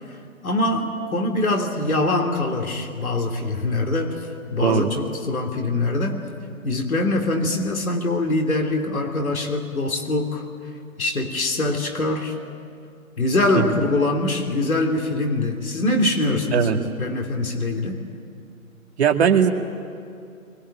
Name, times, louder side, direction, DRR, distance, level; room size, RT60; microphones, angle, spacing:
voice 1, 0.4-6.2 6.6-10.4 11.0-12.3 13.2-18.0, left 2 dB, 75° left, 1 dB, 3.4 m, -23 dB
voice 2, 19.0-19.5, right 8 dB, 50° right, 4 dB, 2.2 m, -18 dB
28.0 x 23.5 x 8.9 m, 2.4 s
figure-of-eight pair, 140°, 42 cm